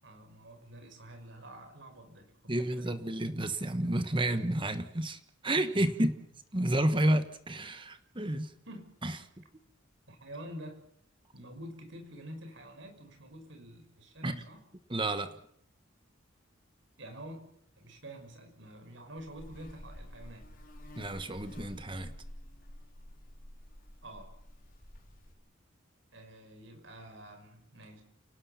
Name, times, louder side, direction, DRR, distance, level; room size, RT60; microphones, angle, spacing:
voice 1, 0.0-2.9 5.8-6.1 8.7-8.8 10.1-10.9 11.3-14.6 17.0-17.5 17.8-20.5 24.0-24.3 26.1-28.0, right 1 dB, 70° right, 4 dB, 5.9 m, -48 dB
voice 2, 2.5-6.1 6.5-8.5 9.0-9.2 14.2-14.4 14.9-15.3 21.0-22.1, right 1 dB, 25° right, 10 dB, 1.3 m, -30 dB
Buzz, 19.2-25.3, equal, 45° left, 4.2 m, -49 dB
30.0 x 19.0 x 5.9 m, 0.69 s
head